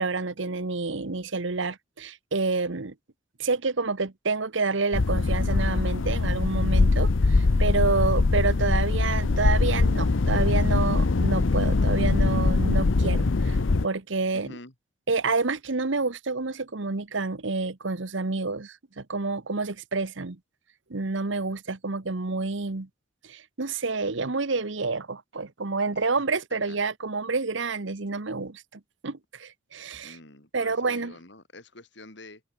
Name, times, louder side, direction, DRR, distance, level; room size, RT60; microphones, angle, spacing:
voice 1, 0.0-2.9 3.4-14.5 15.1-20.4 20.9-22.9 23.2-28.6 29.0-30.2 30.5-31.1, right 3 dB, 70° right, 1.2 m, -28 dB
sound 1, 4.9-13.9, left 3 dB, 75° left, 0.7 m, -22 dB
voice 2, 7.7-8.0 14.3-14.7 25.9-26.0 26.7-26.8 30.0-32.4, left 2 dB, 60° left, 3.9 m, -47 dB
open air
head